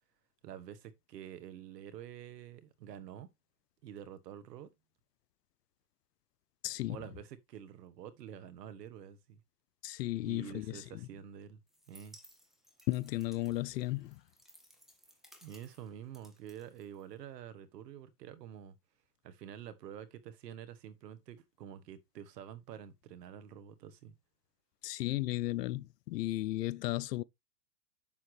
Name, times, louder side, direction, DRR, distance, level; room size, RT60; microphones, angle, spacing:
voice 1, 0.4-3.3 3.8-4.7 6.9-9.4 10.2-11.6 11.9-12.2 15.4-18.7 19.2-24.1, right 9 dB, 75° right, 1.5 m, -48 dB
voice 2, 6.6-7.0 9.8-11.1 12.9-14.2 24.8-27.2, left 17 dB, 75° left, 0.7 m, -35 dB
sound 1, 11.7-17.4, equal, ahead, 1.6 m, -61 dB
7.5 x 7.0 x 3.2 m
hypercardioid pair, 125°, 48 cm